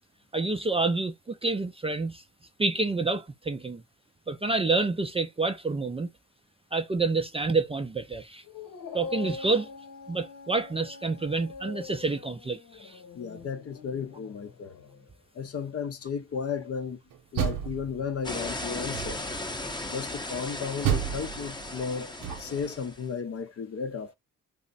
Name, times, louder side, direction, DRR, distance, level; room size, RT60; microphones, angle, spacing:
voice 1, 0.3-2.2 2.6-3.8 4.3-6.1 6.7-8.4 8.9-9.7 10.1-13.0, right 3 dB, 20° right, 0.4 m, -28 dB
Dog, 8.4-15.1, left 5 dB, 85° left, 1.0 m, -44 dB
voice 2, 13.1-14.8 15.3-17.0 17.3-19.2 19.9-22.1 22.4-24.1, left 6 dB, 50° left, 0.6 m, -34 dB
Door, 17.1-18.3 18.9-19.5 20.8-22.7, right 9 dB, 85° right, 0.8 m, -31 dB
sound 1, 18.2-23.0, left 2 dB, 15° left, 0.7 m, -36 dB
3.4 x 2.0 x 3.9 m
cardioid pair, 90°, 32 cm